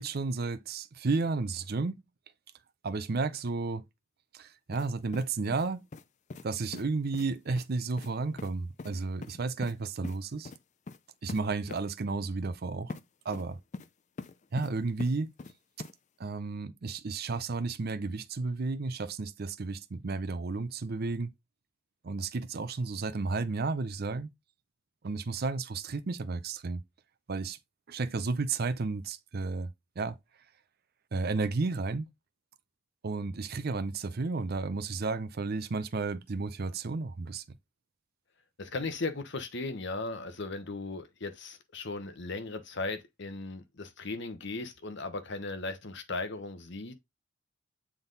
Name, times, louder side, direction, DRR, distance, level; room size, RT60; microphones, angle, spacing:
voice 1, 0.0-2.0 2.8-3.8 4.3-5.8 6.4-10.5 11.2-13.0 13.2-13.6 14.5-15.3 16.2-21.3 22.0-24.3 25.0-26.8 27.3-27.6 27.9-29.7 30.0-30.2 31.1-32.1 33.0-37.4, right 3 dB, 50° right, 0.5 m, -32 dB
sound 1, 4.7-4.9 5.1-6.0 6.3-6.5 6.7-6.8 7.1-7.3 7.6-7.7 8.0-8.1 8.4-8.5 8.8-8.9 9.2-9.7 10.0-10.2 10.4-10.6 10.9-11.0 11.3-11.4 11.7-11.8 12.9-13.0 13.3-13.9 14.2-14.7 15.0-15.5 15.8-15.9, left 3 dB, 35° left, 0.4 m, -42 dB
voice 2, 38.6-46.9, left 3 dB, 60° left, 1.0 m, -37 dB
7.2 x 3.8 x 3.9 m
head